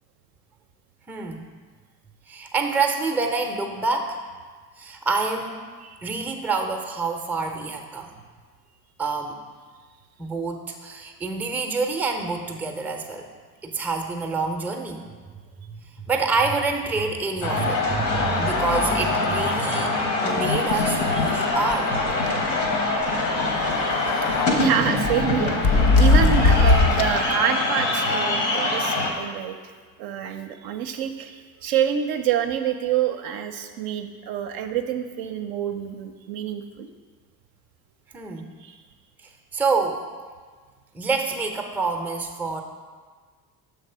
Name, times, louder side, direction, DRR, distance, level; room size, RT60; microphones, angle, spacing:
voice 1, 1.1-1.4 2.3-4.2 4.8-5.6 6.0-8.1 9.0-9.4 10.2-13.3 13.6-15.1 15.7-21.9 38.1-38.5 39.5-40.0 40.9-42.6, right 4 dB, 5° right, 4 dB, 0.5 m, -27 dB
sound 1, 17.4-29.1, left 2 dB, 80° left, 1.1 m, -24 dB
sound 2, 20.4-21.4 21.7-21.8 22.1-22.3 23.5-24.5 25.0-27.3, left 3 dB, 50° left, 0.6 m, -20 dB
voice 2, 24.5-29.7 30.0-36.9 38.6-38.8, right 9 dB, 50° right, 7 dB, 0.5 m, -27 dB
6.5 x 3.4 x 5.4 m, 1.5 s
figure-of-eight pair, 60°, 49 cm